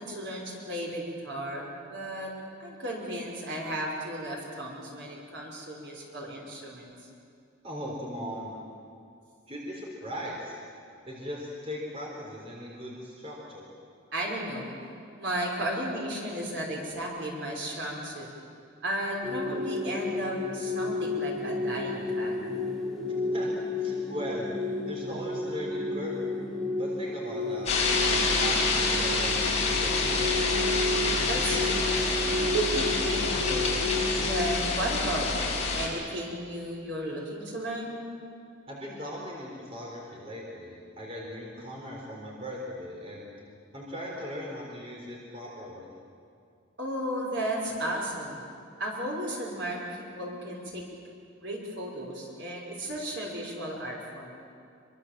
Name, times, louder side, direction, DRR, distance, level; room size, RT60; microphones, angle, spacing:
voice 1, 0.0-2.3 2.6-6.9 14.1-14.7 15.2-18.3 18.8-22.4 31.3-32.0 32.4-33.7 34.2-38.0 46.8-48.4 48.8-50.8 51.4-54.4, right 1 dB, 60° right, -2 dB, 5.6 m, -34 dB
voice 2, 7.6-8.6 9.5-10.6 11.1-13.7 23.3-23.5 23.8-26.3 26.8-27.7 28.0-30.7 38.7-43.3 43.7-45.9, equal, 30° right, -3 dB, 4.1 m, -39 dB
sound 1, 19.2-34.6, left 2 dB, ahead, 2.5 m, -32 dB
sound 2, 27.7-35.9, left 3 dB, 35° left, 5.5 m, -27 dB
26.5 x 24.0 x 7.6 m, 2.3 s
head